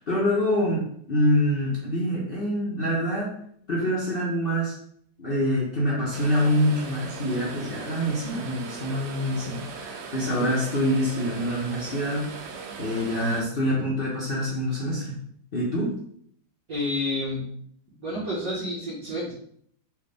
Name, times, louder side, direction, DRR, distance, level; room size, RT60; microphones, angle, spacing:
voice 1, 0.0-3.3 3.7-4.8 5.2-12.4 12.8-15.2 15.5-15.9, equal, 75° left, -5 dB, 0.5 m, -25 dB
sound 1, 6.1-13.4, right 5 dB, 70° right, 1.1 m, -39 dB
voice 2, 13.2-13.5 16.7-17.5 18.0-19.3, left 1 dB, 50° right, -9 dB, 1.7 m, -30 dB
4.5 x 2.3 x 3.4 m, 0.65 s
omnidirectional pair, 2.1 m